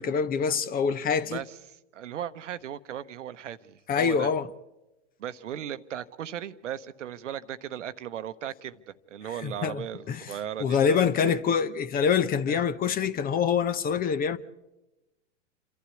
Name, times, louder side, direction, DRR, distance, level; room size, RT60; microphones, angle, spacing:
voice 1, 0.0-1.4 3.9-4.5 9.2-10.3 10.6-14.4, left 7 dB, 25° left, 0.8 m, -25 dB
voice 2, 1.9-4.3 5.2-11.4 12.5-12.6, right 10 dB, 75° right, 0.9 m, -37 dB
28.0 x 12.0 x 8.3 m
hypercardioid pair, 105°, 37 cm